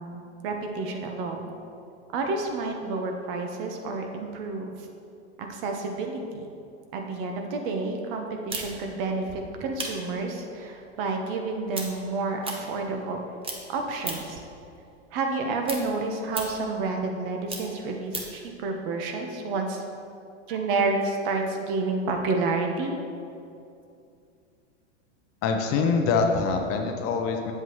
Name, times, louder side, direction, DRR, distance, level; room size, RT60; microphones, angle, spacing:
voice 1, 0.0-1.5 2.1-4.9 5.4-6.5 6.9-13.2 13.7-14.4 15.1-19.8 20.5-23.0, right 3 dB, 50° right, 3 dB, 1.1 m, -30 dB
sound 1, 8.5-13.2 13.4-14.4 14.8-18.4, right 3 dB, 15° right, 1.0 m, -37 dB
voice 2, 25.4-27.5, left 4 dB, 40° left, 4 dB, 0.8 m, -24 dB
8.0 x 7.8 x 3.1 m, 2.5 s
hypercardioid pair, 110°, 35 cm